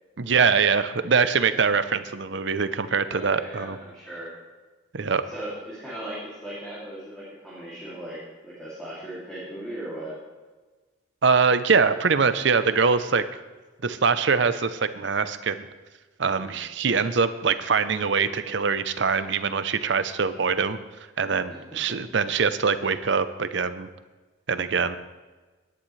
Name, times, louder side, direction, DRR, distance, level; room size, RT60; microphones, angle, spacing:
voice 1, 0.2-3.8 4.9-5.2 11.2-13.2 13.8-15.7 16.2-20.8 21.2-23.9 24.5-25.0, right 5 dB, 65° right, 12 dB, 0.6 m, -23 dB
voice 2, 3.1-4.3 5.3-10.2 16.3-16.6 21.5-22.0, right 1 dB, 5° left, -9 dB, 2.6 m, -38 dB
17.5 x 10.0 x 3.2 m, 1.3 s
head